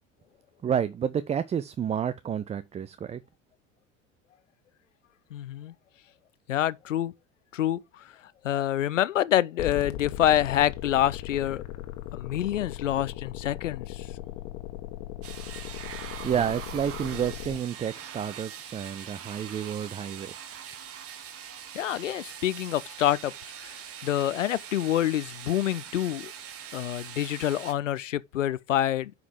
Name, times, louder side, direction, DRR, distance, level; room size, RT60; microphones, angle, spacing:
voice 1, 0.6-3.2 16.2-20.4, right 8 dB, 20° right, 0.4 m, -30 dB
voice 2, 5.3-5.7 6.5-7.1 7.5-8.1 8.4-11.6 12.1-14.1 21.7-23.7 24.0-26.3 26.7-29.1, left 12 dB, 80° left, 0.5 m, -27 dB
sound 1, 9.6-17.6, left 14 dB, 60° left, 1.5 m, -38 dB
sound 2, 15.2-27.7, right 8 dB, 40° right, 1.4 m, -42 dB
9.3 x 5.2 x 3.6 m
figure-of-eight pair, 65°, 37 cm